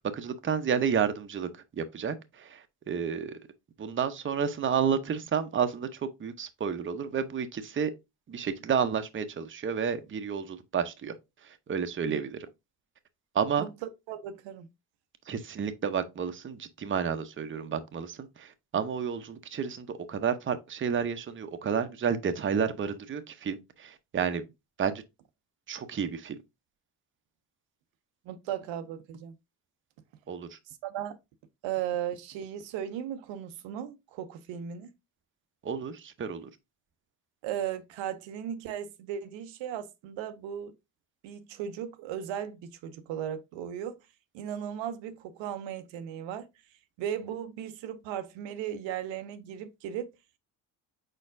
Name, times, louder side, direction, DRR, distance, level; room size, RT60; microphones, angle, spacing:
voice 1, 0.1-1.5 1.8-3.4 3.8-7.9 8.3-11.1 11.4-12.4 13.3-13.7 15.3-24.4 24.8-25.0 25.7-26.4 30.3-30.6 35.6-36.5, right 7 dB, 25° right, 0.6 m, -31 dB
voice 2, 13.6-14.7 28.3-29.3 30.7-31.2 31.6-34.9 37.4-40.7 41.2-44.0 44.3-46.5 47.0-50.1, right 10 dB, 80° right, 0.6 m, -36 dB
4.6 x 4.3 x 2.5 m
supercardioid pair, 70°, 45 cm